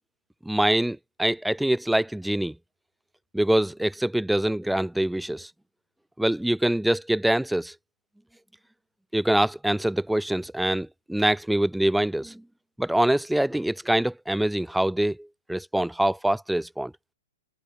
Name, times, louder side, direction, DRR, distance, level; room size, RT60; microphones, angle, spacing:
voice 1, 0.4-2.5 3.3-5.5 6.2-7.7 9.1-12.4 12.8-16.9, right 1 dB, ahead, 4.0 m, -24 dB
hypercardioid pair, 180°, 0 cm